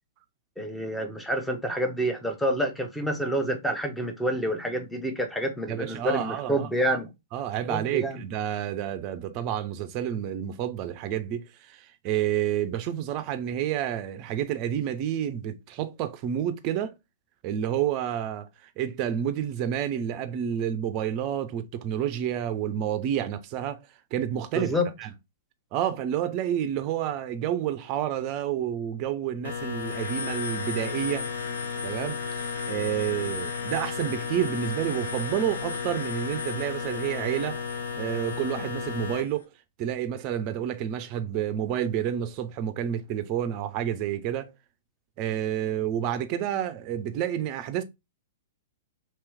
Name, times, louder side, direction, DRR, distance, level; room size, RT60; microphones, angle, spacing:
voice 1, 0.6-7.1 7.7-8.2 24.5-24.9, equal, 5° left, 0.7 m, -28 dB
voice 2, 5.7-6.7 7.3-16.9 17.4-18.5 18.8-23.8 24.1-24.7 25.0-25.1 25.7-31.3 31.8-32.2 32.7-37.6 38.0-39.5 39.8-44.5 45.2-47.8, right 10 dB, 35° right, 0.5 m, -29 dB
sound 1, 29.5-39.2, left 5 dB, 70° left, 0.7 m, -33 dB
3.0 x 3.0 x 3.3 m
figure-of-eight pair, 110°, 0 cm